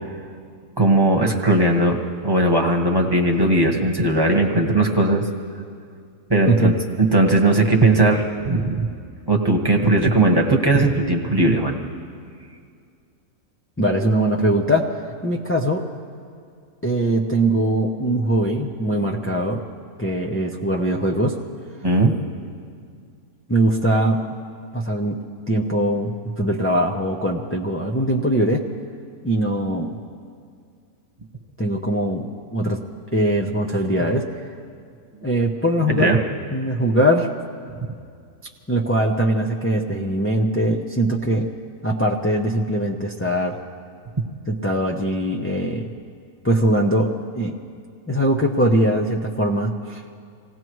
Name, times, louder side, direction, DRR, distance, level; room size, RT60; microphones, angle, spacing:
voice 1, 0.8-2.0 2.2-5.2 6.3-8.8 9.3-11.8 21.8-22.1 35.9-36.2 37.8-37.9, right 2 dB, 15° right, 0 dB, 1.2 m, -18 dB
voice 2, 13.8-14.9 15.2-15.8 16.8-19.6 20.0-21.3 23.5-24.2 24.7-25.2 25.5-28.6 29.2-29.9 31.6-32.8 33.1-34.2 35.2-36.1 36.5-37.3 38.7-41.5 41.8-43.6 44.5-45.9 46.4-47.1 47.4-47.5 48.1-50.0, right 1 dB, 15° left, -1 dB, 0.4 m, -21 dB
26.5 x 18.0 x 3.1 m, 2.3 s
omnidirectional pair, 1.5 m